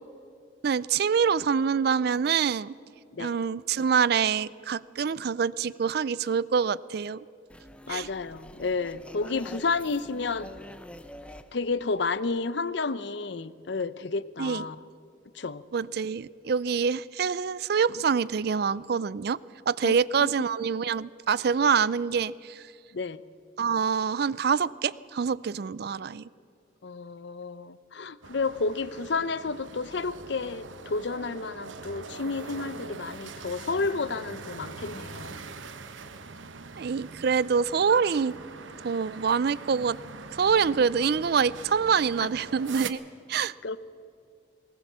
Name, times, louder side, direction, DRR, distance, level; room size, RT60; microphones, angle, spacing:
voice 1, 0.6-2.7 3.2-7.2 7.9-8.1 14.4-14.6 15.7-19.4 19.7-22.6 23.6-26.2 36.8-38.4 38.8-40.0 40.3-43.0 43.3-43.5, right 6 dB, 55° right, 20 dB, 0.4 m, -25 dB
sound 1, 7.5-12.7, equal, 5° left, 0.6 m, -47 dB
voice 2, 7.9-10.5 11.5-14.8 15.4-15.6 19.8-20.3 22.9-23.2 26.8-35.4 42.2-42.3 43.4-43.8, left 4 dB, 60° left, 16 dB, 0.6 m, -31 dB
sound 2, 28.2-42.9, right 4 dB, 75° right, 1.0 m, -42 dB
19.5 x 19.0 x 7.3 m, 2.5 s
head